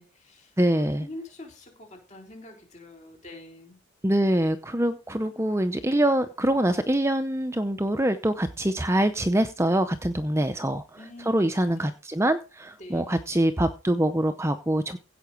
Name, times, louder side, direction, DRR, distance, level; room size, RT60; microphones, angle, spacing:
voice 1, 0.0-3.8 11.0-11.4 11.8-11.9 12.8-13.2, left 1 dB, 35° left, 2 dB, 4.0 m, -45 dB
voice 2, 0.6-1.1 4.0-10.8 11.2-15.0, right 1 dB, 15° right, 10 dB, 0.6 m, -24 dB
16.0 x 5.9 x 4.9 m, 0.32 s
head